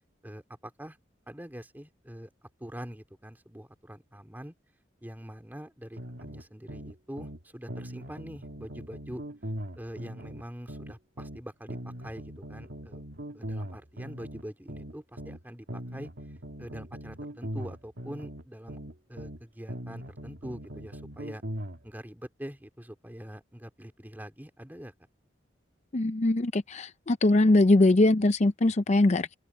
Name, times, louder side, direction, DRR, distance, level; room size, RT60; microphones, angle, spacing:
voice 1, 0.2-1.0 1.3-2.3 2.6-4.5 5.0-9.2 9.8-13.0 13.3-16.1 16.6-18.8 19.1-21.4 21.8-24.9, equal, 10° right, 2.7 m, -44 dB
sound 1, 6.0-7.4 7.7-11.4 11.7-15.4 15.7-19.4 19.7-21.8, equal, 75° right, 2.5 m, -40 dB
voice 2, 25.9-29.3, left 2 dB, 40° left, 0.6 m, -22 dB
open air
head